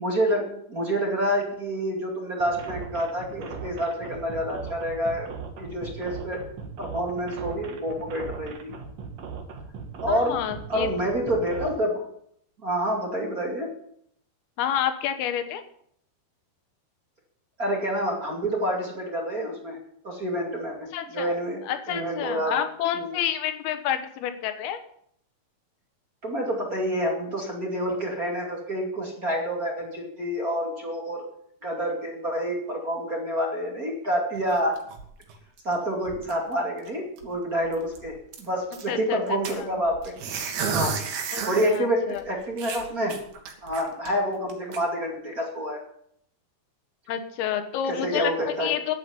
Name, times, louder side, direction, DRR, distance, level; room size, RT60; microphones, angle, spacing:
voice 1, 0.0-5.3 5.6-6.4 6.8-8.7 10.0-10.4 10.7-12.1 12.6-13.7 17.6-21.6 21.9-22.7 22.9-23.2 26.2-31.2 31.6-34.8 35.6-40.2 40.7-40.9 41.4-43.2 43.6-45.8 47.9-48.7, equal, 25° right, -1 dB, 2.2 m, -28 dB
sound 1, 2.4-11.7, right 6 dB, 55° right, 2.2 m, -38 dB
voice 2, 10.1-10.9 14.6-15.6 20.9-21.3 21.6-24.8 38.9-39.7 41.3-42.2 47.1-48.3 48.6-49.0, left 10 dB, 75° left, 9 dB, 3.1 m, -29 dB
sound 2, 34.4-35.7 36.0-36.5 36.9-37.0 37.2-37.4 37.7-38.8 39.4-41.8 42.1-42.2 42.6-44.1 44.5-44.8, right 6 dB, 75° right, 3.7 m, -32 dB
10.5 x 8.5 x 9.5 m, 0.69 s
omnidirectional pair, 4.5 m